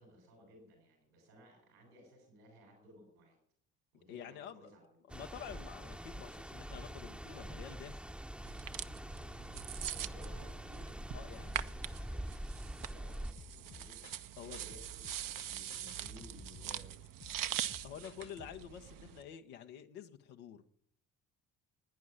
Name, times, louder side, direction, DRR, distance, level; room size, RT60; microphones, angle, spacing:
voice 1, 0.0-3.4 3.9-4.9 9.7-11.0 11.3-17.0, equal, 85° right, 0 dB, 5.7 m, -59 dB
voice 2, 4.1-4.8 5.1-8.0 11.1-11.6 14.4-14.6 17.8-20.6, left 9 dB, 75° left, 5 dB, 1.2 m, -49 dB
sound 1, 5.1-13.3, equal, ahead, 0.9 m, -44 dB
sound 2, 8.5-19.2, right 12 dB, 50° right, 0.8 m, -43 dB
sound 3, 13.4-18.7, left 6 dB, 35° left, 1.3 m, -56 dB
12.0 x 9.6 x 9.9 m, 0.66 s
hypercardioid pair, 50°, 44 cm